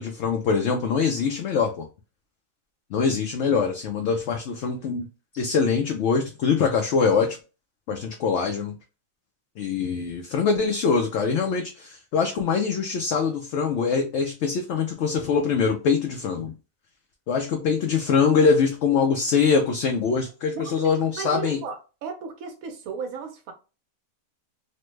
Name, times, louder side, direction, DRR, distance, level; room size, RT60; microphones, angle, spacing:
voice 1, 0.0-1.9 2.9-5.1 5.3-7.4 7.9-8.8 9.6-16.5 17.3-21.6, left 5 dB, 65° left, 0.7 m, -23 dB
voice 2, 20.5-23.5, right 5 dB, 80° right, 1.0 m, -35 dB
3.1 x 2.1 x 3.1 m
omnidirectional pair, 1.5 m